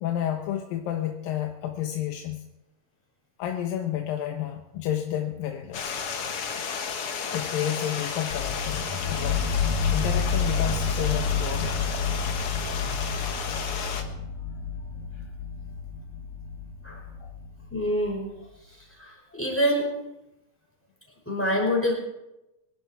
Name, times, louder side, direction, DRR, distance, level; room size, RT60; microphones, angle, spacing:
voice 1, 0.0-2.5 3.4-5.9 7.3-9.5 9.9-12.0 17.2-17.3, left 11 dB, 90° left, 4 dB, 2.8 m, -31 dB
Stream, 5.7-14.0, left 6 dB, 55° left, 1.9 m, -33 dB
sound 1, 8.3-18.1, left 5 dB, 75° left, 3.0 m, -30 dB
voice 2, 17.7-18.2 19.0-19.9 21.3-21.9, equal, 5° left, -1 dB, 5.4 m, -26 dB
24.5 x 12.0 x 4.7 m, 0.95 s
omnidirectional pair, 3.9 m